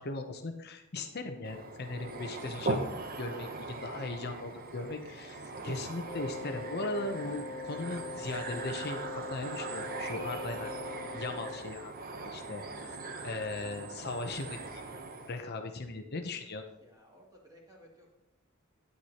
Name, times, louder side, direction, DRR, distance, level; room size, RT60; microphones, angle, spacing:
voice 1, 0.0-10.7 11.1-11.9 12.2-13.0 13.2-14.8 15.3-16.6, left 2 dB, 50° left, 5 dB, 0.8 m, -38 dB
sound 1, 1.4-15.4, right 2 dB, 45° right, 0.9 m, -40 dB
Wind instrument woodwind instrument, 6.0-11.8, left 3 dB, 15° left, 2.3 m, -42 dB
voice 2, 16.8-18.1, equal, 20° right, -3 dB, 2.6 m, -58 dB
9.7 x 9.3 x 2.9 m, 0.89 s
head